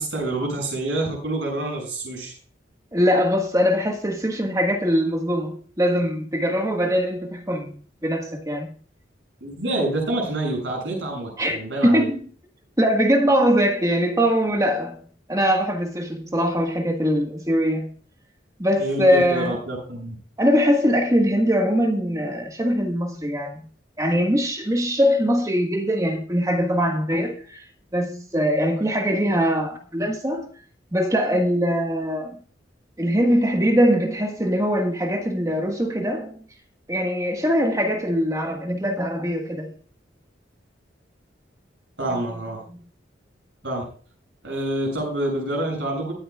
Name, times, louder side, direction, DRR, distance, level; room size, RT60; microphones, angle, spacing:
voice 1, 0.0-2.3 9.4-12.1 18.8-20.1 42.0-42.6 43.6-43.8 44.4-46.1, right 1 dB, 80° right, 7.4 m, -27 dB
voice 2, 2.9-8.7 11.4-12.2 12.8-15.0 15.3-17.9 18.6-19.6 20.4-23.6 24.0-27.6 27.9-30.5 30.9-32.4 33.0-36.4 36.9-39.7 42.7-42.8, equal, 20° right, 1.6 m, -22 dB
23.5 x 9.2 x 2.4 m
head